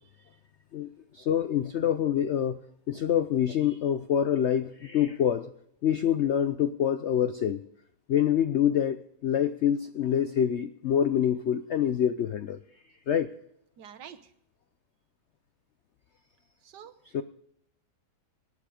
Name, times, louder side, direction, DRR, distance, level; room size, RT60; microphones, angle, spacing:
voice 1, 0.7-2.6 2.9-5.5 5.8-7.6 8.1-12.6 13.1-13.3 17.1-17.2, left 9 dB, 75° left, 11 dB, 0.6 m, -26 dB
voice 2, 13.8-14.3 16.6-16.9, right 8 dB, 75° right, 10 dB, 1.6 m, -47 dB
18.5 x 8.4 x 5.0 m, 0.75 s
omnidirectional pair, 1.9 m